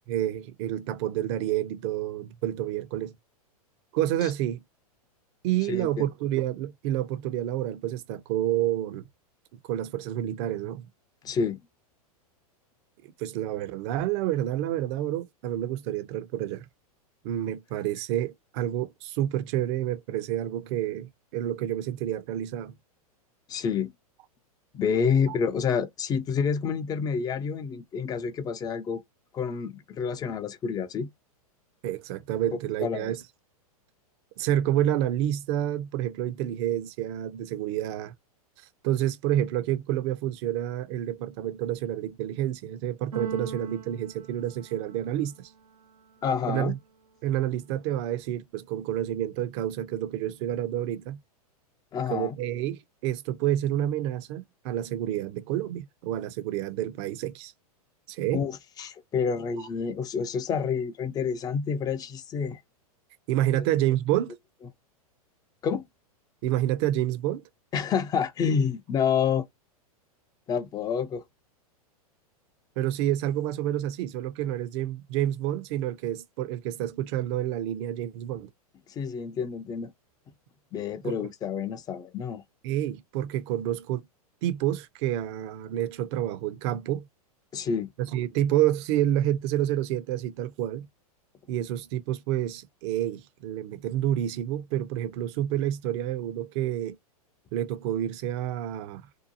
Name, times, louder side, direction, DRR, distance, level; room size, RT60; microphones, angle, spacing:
voice 1, 0.0-3.1 3.9-4.6 5.4-9.0 9.7-10.9 13.0-16.6 17.2-22.7 31.8-33.2 34.4-38.1 38.8-45.5 46.5-46.8 47.2-51.2 52.1-57.5 58.1-58.4 63.3-64.3 66.4-67.4 72.8-78.5 81.0-81.2 82.6-84.1 84.4-87.1 88.0-90.9 91.5-97.0 97.5-99.0, right 12 dB, 45° right, 0.6 m, -29 dB
voice 2, 5.7-6.1 11.2-11.6 23.5-23.9 24.7-29.0 29.3-31.1 32.8-33.1 46.2-46.7 51.9-52.4 58.3-62.6 65.6-65.8 67.7-69.4 70.5-71.2 78.9-79.9 80.7-82.4 87.5-87.9, left 6 dB, 20° left, 0.4 m, -28 dB
Keyboard (musical), 43.1-45.2, right 5 dB, 90° right, 0.9 m, -39 dB
2.8 x 2.2 x 2.6 m
hypercardioid pair, 115°, 19 cm